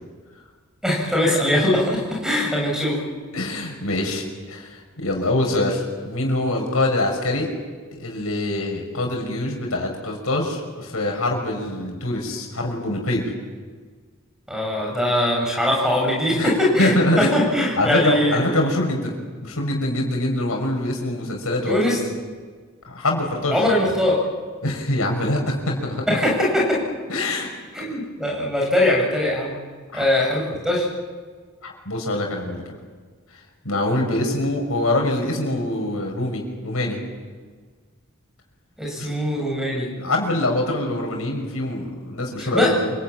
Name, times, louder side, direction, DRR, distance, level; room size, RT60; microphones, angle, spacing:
voice 1, 0.8-3.0 14.5-18.7 21.7-22.0 23.5-24.2 26.1-26.8 27.7-29.5 29.9-30.8 38.8-39.9 42.4-42.7, left 1 dB, ahead, -2 dB, 8.0 m, -21 dB
voice 2, 3.3-7.5 7.9-13.3 16.3-16.5 16.8-17.4 17.8-19.1 19.4-22.0 22.9-23.6 24.6-26.1 27.1-27.5 29.9-30.3 31.6-32.6 33.6-37.0 39.0-39.1 39.9-42.9, left 1 dB, 85° left, 1 dB, 6.0 m, -24 dB
28.0 x 20.0 x 9.1 m, 1.5 s
head